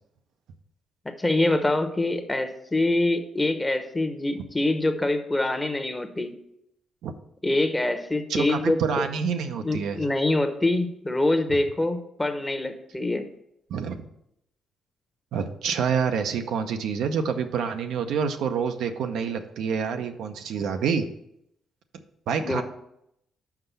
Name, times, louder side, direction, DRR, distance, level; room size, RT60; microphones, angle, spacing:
voice 1, 1.0-6.3 7.4-8.8 9.6-13.3 22.4-22.6, left 2 dB, 15° left, 8 dB, 1.0 m, -25 dB
voice 2, 8.3-10.0 11.5-11.6 13.7-14.0 15.3-21.1 22.3-22.6, right 6 dB, 80° right, 6 dB, 0.7 m, -27 dB
5.9 x 5.4 x 6.8 m, 0.77 s
cardioid pair, 90°, 0 cm